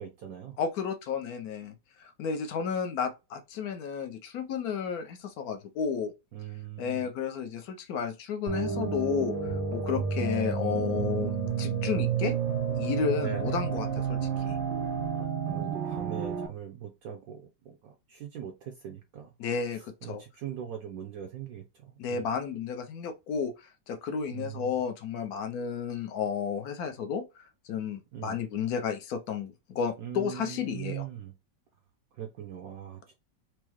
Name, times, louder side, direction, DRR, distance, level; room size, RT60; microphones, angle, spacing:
voice 1, 0.0-0.6 6.3-7.1 13.2-13.8 15.1-19.3 19.7-22.3 24.3-24.7 28.1-28.4 30.0-31.3 32.1-33.1, right 9 dB, 70° right, 0.9 m, -41 dB
voice 2, 0.6-6.1 6.8-12.3 12.8-14.6 19.4-20.2 22.0-31.0, left 6 dB, 70° left, 1.0 m, -32 dB
sound 1, 8.5-16.5, right 6 dB, 85° right, 1.4 m, -30 dB
4.7 x 2.0 x 3.0 m
omnidirectional pair, 2.0 m